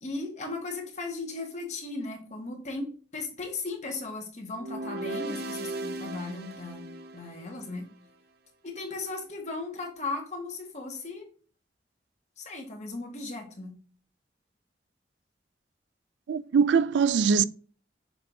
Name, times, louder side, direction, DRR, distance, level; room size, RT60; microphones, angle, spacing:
voice 1, 0.0-6.9 7.1-7.8 8.6-11.3 12.4-13.7, left 3 dB, 40° left, 1.6 m, -36 dB
sound 1, 4.5-7.8, right 2 dB, 60° right, 0.8 m, -37 dB
voice 2, 16.3-17.4, right 6 dB, 85° right, 0.3 m, -22 dB
6.8 x 5.3 x 2.7 m
head